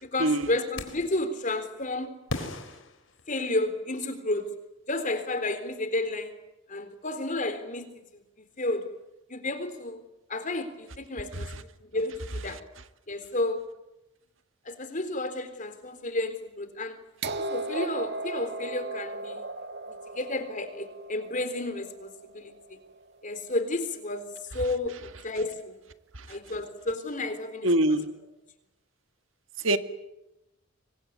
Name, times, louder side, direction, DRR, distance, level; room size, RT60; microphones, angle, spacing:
voice 1, 0.0-2.2 3.3-4.5 4.9-6.3 6.7-7.9 8.6-8.9 9.3-10.0 10.3-12.6 13.1-13.7 14.7-17.0 17.4-19.4 20.1-22.8 23.2-25.8 26.3-27.7, left 2 dB, 40° left, 3.8 m, -31 dB
sound 1, 0.8-1.2 2.3-3.8, left 2 dB, 65° left, 4.0 m, -38 dB
sound 2, 17.2-23.1 24.2-24.3, right 2 dB, 55° right, 1.7 m, -37 dB
voice 2, 27.6-28.1 29.6-29.8, right 1 dB, 75° right, 1.9 m, -23 dB
26.5 x 23.0 x 9.6 m
head